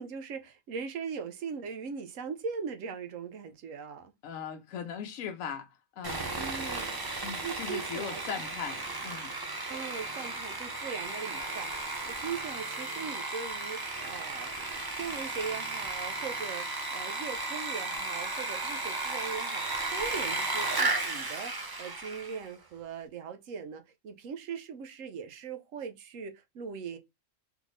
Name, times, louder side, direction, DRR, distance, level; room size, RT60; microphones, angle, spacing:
voice 1, 0.0-4.1 6.4-7.0 7.4-8.2 9.7-14.5 14.9-27.0, right 6 dB, 80° right, 1.1 m, -40 dB
voice 2, 4.2-5.7 6.0-6.3 7.2-9.3, left 7 dB, 80° left, 1.0 m, -39 dB
Sawing, 6.0-22.5, right 2 dB, 25° right, 0.5 m, -34 dB
3.6 x 3.5 x 3.1 m
omnidirectional pair, 1.4 m